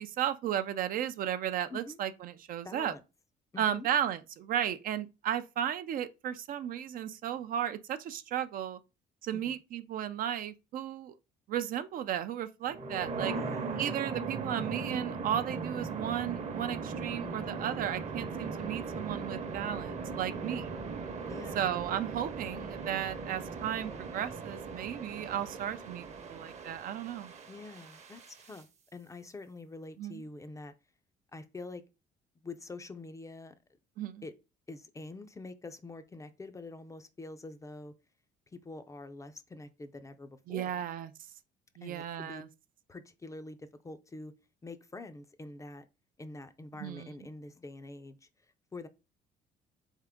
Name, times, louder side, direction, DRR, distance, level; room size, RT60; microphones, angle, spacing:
voice 1, 0.0-2.9 3.6-8.8 9.2-11.1 11.5-13.3 13.8-20.6 21.5-27.3 30.0-30.2 34.0-34.2 40.5-41.1 41.8-42.5 46.8-47.1, right 10 dB, 55° right, 0.4 m, -34 dB
voice 2, 2.6-3.0 3.5-3.9 9.3-9.6 13.3-13.9 20.3-20.7 21.3-21.7 27.5-28.7 28.9-30.7 31.3-31.8 32.4-33.5 34.2-34.3 34.7-37.9 38.5-40.8 41.8-42.4 42.9-44.3 44.6-45.9 46.2-48.3 48.7-48.9, left 2 dB, 20° left, 0.4 m, -46 dB
sound 1, 12.7-28.6, right 4 dB, 40° right, 0.8 m, -39 dB
3.6 x 3.6 x 3.5 m
cardioid pair, 110°, 17 cm